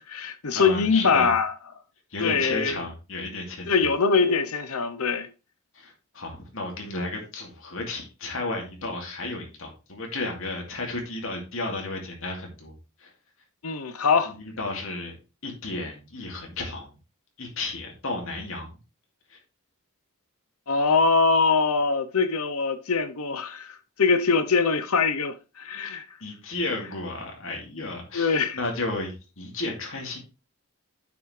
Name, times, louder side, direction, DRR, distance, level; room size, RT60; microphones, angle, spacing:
voice 1, 0.0-1.5 2.2-2.8 3.7-5.3 13.6-14.3 20.7-26.0 28.1-28.6, left 4 dB, 80° left, 0.9 m, -23 dB
voice 2, 0.5-1.3 2.1-3.7 5.7-12.7 13.0-13.1 14.3-15.1 15.4-17.0 17.4-18.7 19.3-19.4 25.8-30.2, left 2 dB, 65° left, 2.6 m, -33 dB
9.2 x 6.1 x 3.3 m
head